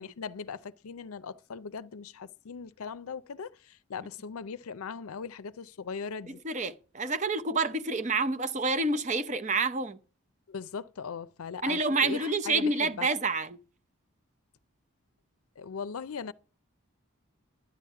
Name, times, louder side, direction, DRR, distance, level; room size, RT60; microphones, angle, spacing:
voice 1, 0.0-6.4 10.5-13.1 15.6-16.3, left 5 dB, 90° left, 0.5 m, -39 dB
voice 2, 6.3-10.0 11.6-13.6, right 3 dB, 35° right, 0.7 m, -28 dB
11.0 x 10.0 x 5.7 m
head